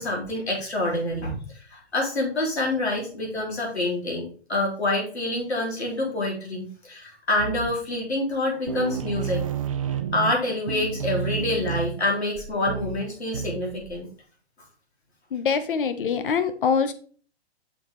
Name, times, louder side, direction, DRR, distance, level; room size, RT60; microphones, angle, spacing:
voice 1, 0.0-9.4 9.8-14.1, left 2 dB, 75° left, -3 dB, 3.2 m, -27 dB
sound 1, 7.4-8.0 8.3-8.4 8.7-14.0, right 9 dB, 35° right, 0.4 m, -31 dB
voice 2, 15.3-16.9, left 6 dB, 50° left, 10 dB, 0.8 m, -24 dB
5.8 x 4.1 x 4.9 m, 0.41 s
figure-of-eight pair, 125°, 33 cm